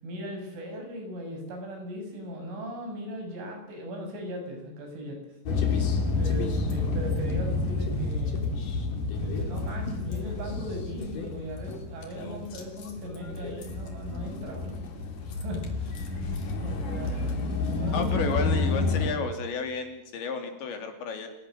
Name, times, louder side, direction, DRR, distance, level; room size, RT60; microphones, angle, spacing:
voice 1, 0.0-5.2 6.2-8.4 9.2-14.8 15.3-16.2 16.6-18.3, equal, 75° right, 3 dB, 9.5 m, -38 dB
sound 1, 5.5-19.1, left 3 dB, 45° left, 4.5 m, -30 dB
voice 2, 16.2-16.6 17.9-21.3, left 4 dB, 65° left, 6 dB, 5.2 m, -32 dB
28.5 x 18.0 x 7.9 m, 0.85 s
omnidirectional pair, 5.6 m